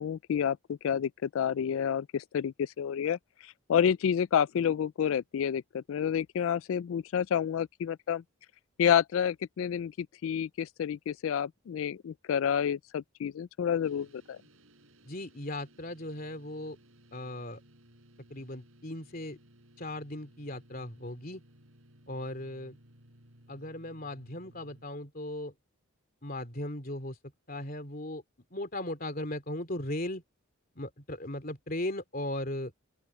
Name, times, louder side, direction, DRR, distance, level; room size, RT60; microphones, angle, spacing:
voice 1, 0.0-3.2 3.7-8.2 8.8-14.4, left 8 dB, 65° left, 0.3 m, -29 dB
sound 1, 13.8-24.8, right 1 dB, 65° right, 7.8 m, -59 dB
voice 2, 15.1-16.8 17.1-17.6 18.3-19.4 19.8-21.4 22.1-22.8 23.5-25.5 26.2-27.2 27.5-28.2 28.5-30.2 30.7-32.7, left 1 dB, 40° left, 3.3 m, -37 dB
open air
head